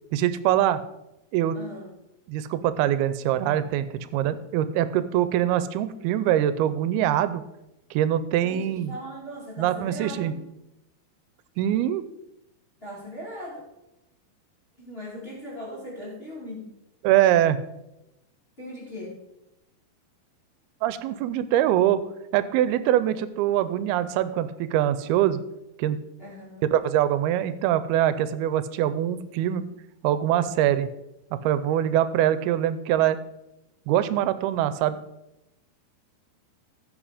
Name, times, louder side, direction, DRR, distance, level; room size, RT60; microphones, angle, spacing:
voice 1, 0.1-0.8 1.3-1.6 2.3-3.9 4.1-7.4 7.9-9.0 9.6-10.3 11.6-12.0 17.0-17.6 20.8-22.0 22.3-25.4 25.8-26.0 26.7-29.7 30.0-30.9 31.4-33.2 33.9-35.0, right 12 dB, 90° right, 13 dB, 2.6 m, -23 dB
voice 2, 1.5-1.9 8.4-10.4 12.8-13.7 14.8-16.7 18.6-19.2 26.2-26.7, equal, 20° left, -6 dB, 2.2 m, -39 dB
15.0 x 5.8 x 5.0 m, 0.90 s
omnidirectional pair, 4.4 m